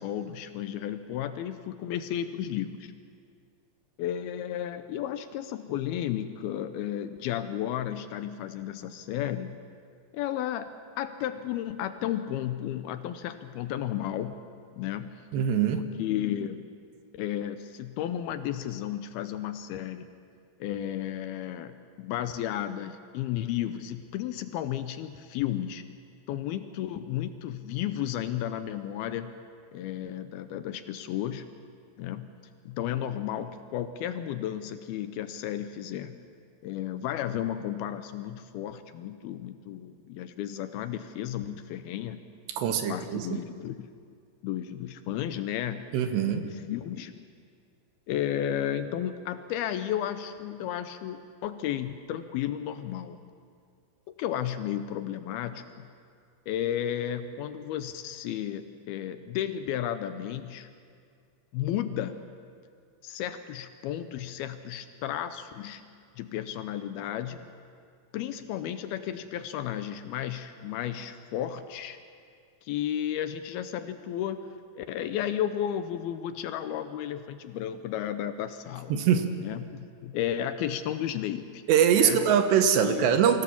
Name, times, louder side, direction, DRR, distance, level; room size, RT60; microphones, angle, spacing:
voice 1, 0.0-2.9 4.0-9.6 10.1-10.7 11.0-14.4 14.7-15.3 15.7-16.8 17.2-20.1 20.6-21.7 22.0-25.8 26.3-29.4 29.7-31.5 32.0-32.3 32.7-36.2 36.6-42.2 42.7-43.9 44.4-45.8 46.2-47.1 48.1-53.2 54.2-55.6 56.5-60.7 61.5-62.3 63.0-65.9 66.2-67.5 68.1-72.0 72.6-79.0 79.4-81.6 81.9-82.2 82.8-83.1, left 11 dB, 80° left, 10 dB, 2.4 m, -33 dB
voice 2, 15.3-15.8 42.6-43.4 45.9-46.4 78.9-79.3 81.7-83.4, right 8 dB, 90° right, 7 dB, 3.4 m, -23 dB
24.5 x 16.0 x 7.2 m, 2.2 s
omnidirectional pair, 4.8 m